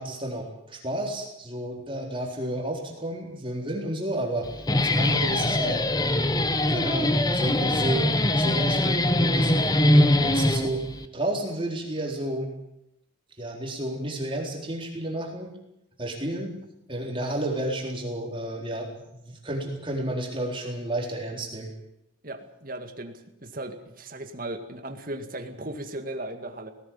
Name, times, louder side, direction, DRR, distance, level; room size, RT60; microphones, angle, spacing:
voice 1, 0.0-6.3 6.7-8.1 8.3-10.8 11.1-12.5 13.4-15.5 16.0-16.6 16.9-18.9 19.2-21.7, right 1 dB, 25° right, 0 dB, 4.0 m, -31 dB
Guitar, 4.4-11.0, left 1 dB, 20° left, 1.0 m, -22 dB
voice 2, 22.2-26.7, right 1 dB, 45° right, 7 dB, 2.1 m, -37 dB
18.5 x 17.5 x 8.9 m, 0.82 s
head